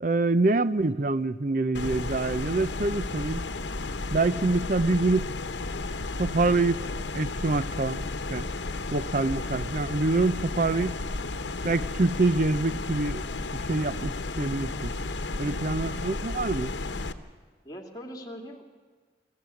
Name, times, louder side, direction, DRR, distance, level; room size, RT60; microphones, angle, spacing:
voice 1, 0.0-3.4 4.1-5.3 6.2-6.8 7.1-8.0 8.3-8.4 8.9-11.0 11.6-13.2 13.5-14.9 15.4-16.8, right 3 dB, 45° right, 0.6 m, -26 dB
sound 1, 1.7-17.1, left 3 dB, 85° left, 1.0 m, -33 dB
voice 2, 9.5-9.8 17.6-18.6, equal, 20° left, 2.3 m, -42 dB
22.5 x 15.0 x 8.4 m
head